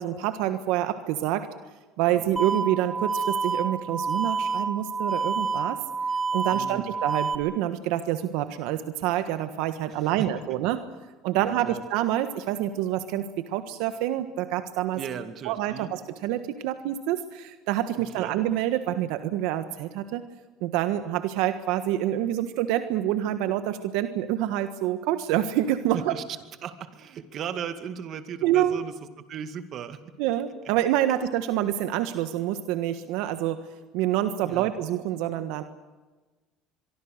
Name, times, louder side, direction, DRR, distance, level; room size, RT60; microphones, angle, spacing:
voice 1, 0.0-1.5 2.0-5.8 6.3-10.8 11.2-15.0 15.4-20.2 20.6-26.1 28.4-28.8 30.2-33.6 33.9-35.6, right 12 dB, 75° right, 9 dB, 1.4 m, -27 dB
sound 1, 2.4-7.4, right 4 dB, 15° right, 2.1 m, -28 dB
voice 2, 6.5-6.9 9.9-10.3 11.4-11.8 14.9-15.9 18.0-18.4 25.9-26.2 26.6-30.0 34.4-34.7, right 8 dB, 45° right, 9 dB, 2.2 m, -37 dB
24.5 x 23.5 x 6.6 m, 1.2 s
cardioid pair, 125°, 0 cm